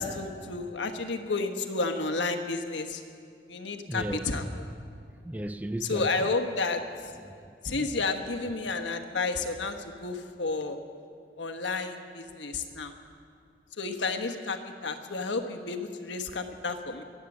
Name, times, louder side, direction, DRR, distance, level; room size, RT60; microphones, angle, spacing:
voice 1, 0.0-3.0 3.5-4.4 5.9-6.8 7.6-10.8 11.4-12.9 13.8-17.0, left 3 dB, 85° left, 1.2 m, -31 dB
voice 2, 3.9-4.3 5.2-6.3 7.2-7.9, right 1 dB, 10° right, 0.3 m, -36 dB
22.5 x 8.3 x 7.3 m
head